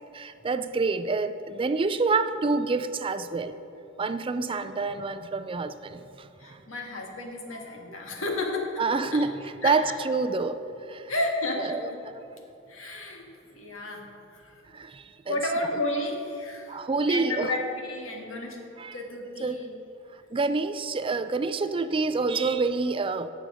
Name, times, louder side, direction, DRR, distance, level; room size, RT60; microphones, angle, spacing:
voice 1, 0.1-3.6 4.0-6.6 8.8-10.6 10.9-11.0 11.6-12.2 14.7-15.4 16.7-17.5 18.8-19.0 19.4-19.7 20.3-23.3, right 4 dB, 25° right, 10 dB, 0.4 m, -27 dB
voice 2, 4.3-4.7 6.4-8.8 9.1-9.2 9.6-9.9 11.1-12.0 12.7-14.6 15.3-18.6 18.9-19.7, left 1 dB, 85° left, 1 dB, 1.8 m, -32 dB
17.0 x 6.4 x 5.1 m, 2.8 s
head